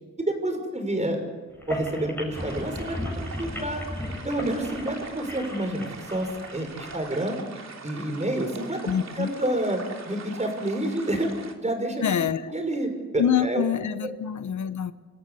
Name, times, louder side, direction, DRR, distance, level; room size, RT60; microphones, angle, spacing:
voice 1, 0.2-1.2 1.7-3.8 4.2-7.4 7.8-8.8 9.2-11.3 11.6-12.0 12.5-13.6 14.0-14.1, right 1 dB, 25° right, 5 dB, 5.7 m, -28 dB
sound 1, 1.5-6.9, equal, 5° left, 6.7 m, -36 dB
sound 2, 2.3-11.5, right 5 dB, 65° right, 3.2 m, -43 dB
voice 2, 8.9-9.3 12.0-12.5 13.2-14.9, left 8 dB, 80° left, 12 dB, 1.0 m, -25 dB
27.5 x 14.0 x 9.7 m, 1.4 s
cardioid pair, 85°, 29 cm